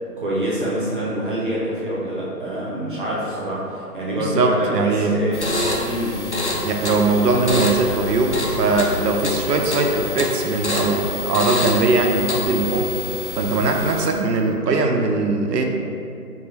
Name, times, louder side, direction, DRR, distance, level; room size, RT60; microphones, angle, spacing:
voice 1, 0.2-6.2, right 1 dB, 35° right, -7 dB, 0.7 m, -26 dB
voice 2, 4.2-5.1 6.6-12.9 13.4-15.6, right 3 dB, 85° right, 3 dB, 0.5 m, -20 dB
sound 1, 5.3-14.3, left 2 dB, 50° left, 0.4 m, -26 dB
4.5 x 2.3 x 2.7 m, 2.6 s
figure-of-eight pair, 155°, 48 cm